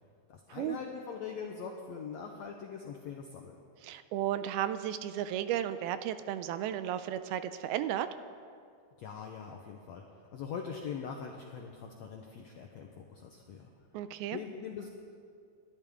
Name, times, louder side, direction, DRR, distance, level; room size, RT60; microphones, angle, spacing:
voice 1, 0.3-3.5 9.0-10.0 10.3-13.7 14.3-14.9, left 6 dB, 90° left, 1 dB, 1.5 m, -42 dB
voice 2, 3.8-8.1 13.9-14.4, right 11 dB, 80° right, 11 dB, 2.4 m, -34 dB
29.5 x 12.5 x 3.7 m, 2.3 s
omnidirectional pair, 4.5 m